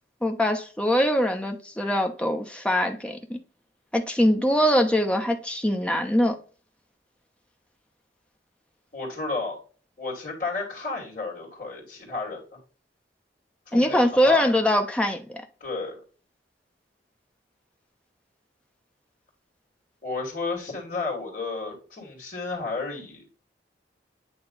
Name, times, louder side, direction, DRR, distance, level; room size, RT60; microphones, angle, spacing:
voice 1, 0.2-3.4 3.9-6.4 13.7-15.4, equal, 5° left, 0.8 m, -23 dB
voice 2, 8.9-9.6 10.0-12.4 13.7-14.5 15.6-16.0 20.0-23.2, left 3 dB, 45° left, 2.4 m, -32 dB
9.0 x 3.1 x 4.0 m
head